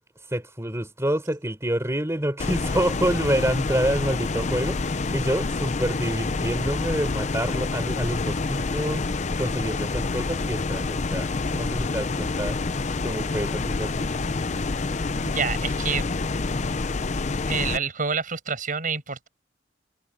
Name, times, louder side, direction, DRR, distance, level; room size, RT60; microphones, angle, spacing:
voice 1, 0.2-12.6 13.0-14.1, right 1 dB, 15° right, 4.6 m, -28 dB
sound 1, 2.4-17.8, left 3 dB, 40° left, 0.6 m, -27 dB
voice 2, 15.3-16.0 17.5-19.3, right 5 dB, 45° right, 6.0 m, -27 dB
head